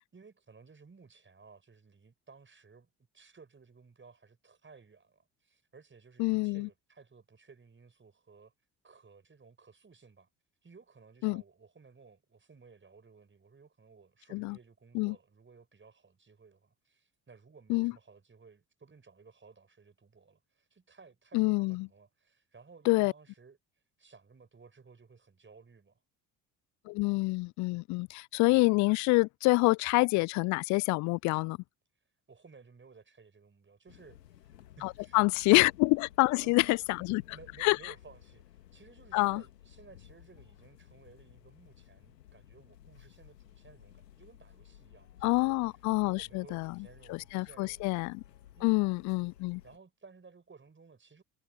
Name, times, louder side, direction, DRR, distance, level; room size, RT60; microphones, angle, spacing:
voice 1, 0.0-2.9 3.1-8.5 8.8-10.3 10.6-23.6 24.0-26.0 32.3-34.5 34.8-35.6 36.3-38.4 38.7-45.5 45.9-48.0 48.6-48.9 49.6-51.2, right 4 dB, 25° right, 5.9 m, -57 dB
voice 2, 6.2-6.7 11.2-11.4 14.3-14.6 14.9-15.2 17.7-17.9 21.3-21.9 22.9-23.1 26.9-31.6 34.8-37.2 37.6-37.9 39.1-39.4 45.2-46.7 47.1-48.2 48.6-49.6, left 24 dB, 40° left, 0.4 m, -27 dB
sound 1, 33.9-49.8, left 12 dB, 75° left, 2.3 m, -56 dB
figure-of-eight pair, 55°, 49 cm